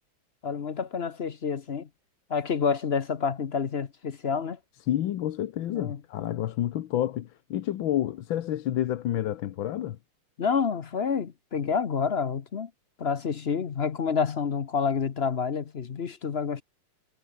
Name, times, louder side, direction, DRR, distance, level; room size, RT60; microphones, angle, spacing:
voice 1, 0.4-1.9 2.3-4.6 5.7-6.0 10.4-12.7 13.0-16.6, left 6 dB, 50° left, 0.8 m, -28 dB
voice 2, 4.9-10.0, left 12 dB, 70° left, 1.6 m, -29 dB
omnidirectional pair, 2.3 m